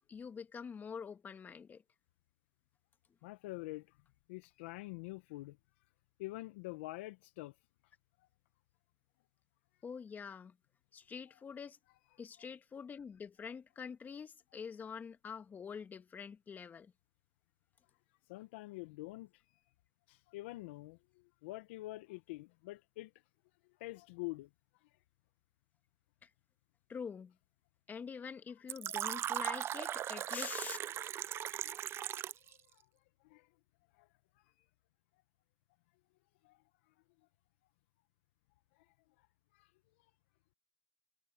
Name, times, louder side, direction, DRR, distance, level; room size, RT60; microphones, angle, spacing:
voice 1, 0.1-1.8 9.8-10.5 10.9-11.8 12.2-16.9 26.2-26.3 26.9-27.3 27.9-30.8, left 6 dB, 30° left, 1.7 m, -46 dB
voice 2, 3.2-4.0 4.3-5.6 6.2-7.6 8.2-8.3 11.3-11.4 12.4-12.5 18.3-19.4 20.1-23.1 23.8-24.5 24.8-24.9 28.8-29.2 31.6-31.7 32.4-32.9 33.2-33.5 33.9-34.1 34.4-34.5 36.4-36.9 38.7-38.9 39.2-39.3 39.5-39.7, left 20 dB, 75° left, 1.2 m, -47 dB
Fill (with liquid), 28.7-32.5, right 11 dB, 40° right, 0.5 m, -38 dB
hypercardioid pair, 95°, 6 cm